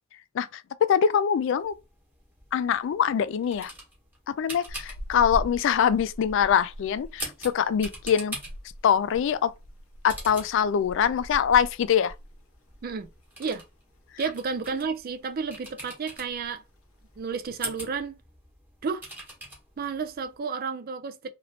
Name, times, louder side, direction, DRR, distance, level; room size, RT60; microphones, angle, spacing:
voice 1, 0.3-1.7 2.5-3.7 4.4-8.4 8.8-9.5 10.0-12.1, left 8 dB, 65° left, 0.3 m, -23 dB
sound 1, 1.6-20.4, right 1 dB, 10° right, 1.2 m, -44 dB
sound 2, 4.7-13.2 13.5-13.7 14.1-14.9 15.2-15.6 15.9-16.6 17.1-17.6, equal, 85° left, 0.7 m, -42 dB
voice 2, 14.2-16.6 17.2-18.2 18.8-19.1 19.8-21.3, right 5 dB, 45° right, 0.4 m, -31 dB
3.0 x 2.9 x 2.6 m
head